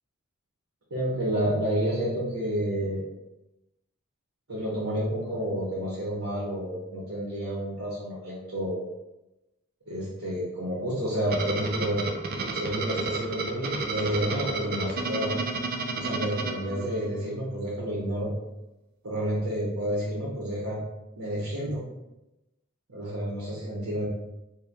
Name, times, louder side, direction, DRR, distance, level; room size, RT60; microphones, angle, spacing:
voice 1, 0.9-3.0 4.5-8.8 9.9-12.0 12.5-15.4 15.9-18.3 19.0-20.8 21.2-21.8 22.9-24.1, equal, 70° right, -5 dB, 1.0 m, -30 dB
sound 1, 11.3-17.3, right 3 dB, 45° right, 0.4 m, -32 dB
4.4 x 2.2 x 3.5 m, 0.96 s
head